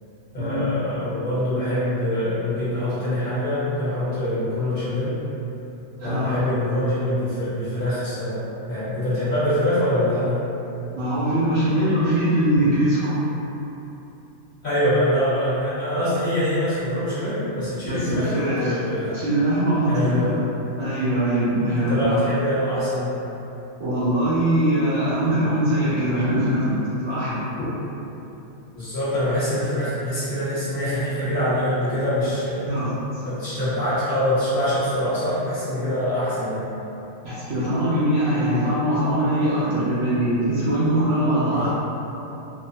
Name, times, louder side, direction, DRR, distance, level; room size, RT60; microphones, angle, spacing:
voice 1, 0.3-5.2 6.0-8.4 8.7-10.4 14.6-19.2 19.9-20.4 21.8-23.1 27.6-27.7 28.7-32.6 33.2-36.7 41.5-41.7, left 1 dB, 45° left, -13 dB, 1.0 m, -24 dB
voice 2, 6.0-6.3 11.0-13.4 17.8-18.8 19.1-20.2 20.8-22.2 23.8-27.4 32.7-33.2 37.2-41.7, right 1 dB, 65° right, -12 dB, 0.7 m, -22 dB
2.8 x 2.0 x 2.6 m, 2.9 s
omnidirectional pair, 1.5 m